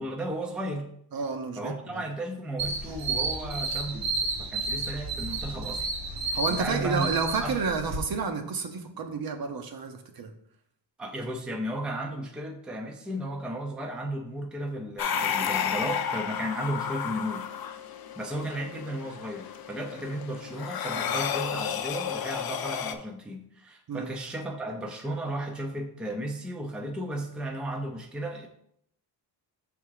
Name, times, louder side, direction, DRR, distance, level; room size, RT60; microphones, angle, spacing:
voice 1, 0.0-0.9 1.6-5.9 6.2-7.1 7.4-7.6 11.0-17.5 18.2-28.5, right 1 dB, ahead, 3 dB, 0.5 m, -34 dB
voice 2, 1.1-2.0 6.3-10.3 21.1-21.2 23.9-24.1, right 5 dB, 55° right, 6 dB, 0.9 m, -30 dB
sound 1, 2.6-8.0, right 3 dB, 85° right, 1.5 m, -32 dB
sound 2, 15.0-22.9, left 8 dB, 60° left, 0.6 m, -32 dB
6.7 x 3.7 x 4.7 m, 0.71 s
wide cardioid pair, 160°, 42 cm